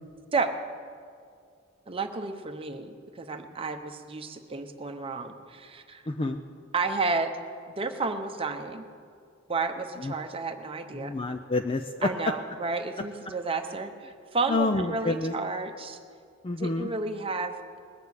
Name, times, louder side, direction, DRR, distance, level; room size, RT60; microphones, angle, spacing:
voice 1, 1.9-6.0 6.7-7.3 7.8-8.8 9.5-11.1 12.0-16.0 16.6-17.8, right 3 dB, 30° right, 5 dB, 0.9 m, -31 dB
voice 2, 6.1-6.4 10.0-10.1 10.9-12.1 14.5-15.3 16.4-16.9, left 2 dB, 25° left, 6 dB, 0.4 m, -28 dB
20.0 x 6.8 x 8.4 m, 2.2 s
head